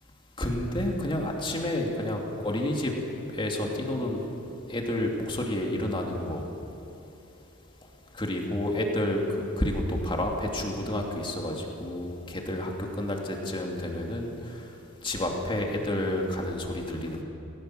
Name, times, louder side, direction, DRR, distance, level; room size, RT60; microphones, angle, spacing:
voice 1, 0.4-2.9 3.3-4.3 4.7-6.4 8.1-14.8 15.0-17.2, left 1 dB, 25° left, 0 dB, 2.7 m, -30 dB
19.5 x 18.0 x 7.6 m, 2.9 s
head